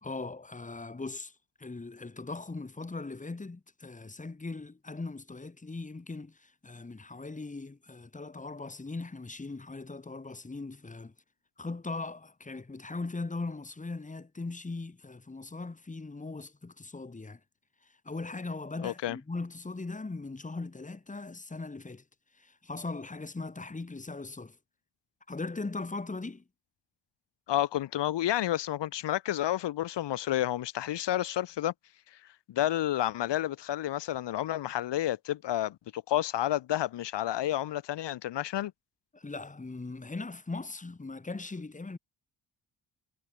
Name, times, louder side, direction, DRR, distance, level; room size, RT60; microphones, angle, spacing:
voice 1, 0.0-11.1 11.6-17.4 17.8-22.0 22.3-24.6 25.3-26.4 39.1-42.0, left 3 dB, 20° left, 2.5 m, -39 dB
voice 2, 18.8-19.2 27.5-31.7 32.5-38.7, left 13 dB, 80° left, 1.2 m, -30 dB
cardioid pair, 120°, 42 cm